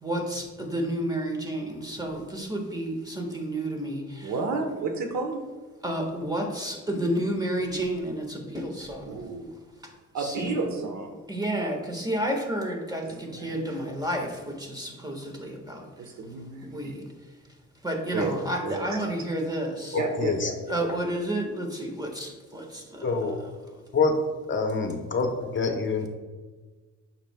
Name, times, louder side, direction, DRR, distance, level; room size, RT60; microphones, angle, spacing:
voice 1, 0.0-4.3 5.8-9.2 10.2-10.6 11.3-15.9 16.6-17.1 17.8-20.0 20.7-23.1, right 1 dB, 15° right, 2 dB, 1.5 m, -31 dB
voice 2, 4.2-5.4 9.0-9.5 10.1-11.2 13.1-13.6 16.0-16.9 18.1-19.0 19.9-21.1, right 3 dB, 65° right, 5 dB, 1.0 m, -32 dB
voice 3, 19.9-20.8 23.0-23.4 23.9-24.2 24.5-26.1, left 4 dB, 40° left, 4 dB, 0.9 m, -26 dB
8.7 x 6.1 x 2.2 m, 1.3 s
cardioid pair, 90°, 30 cm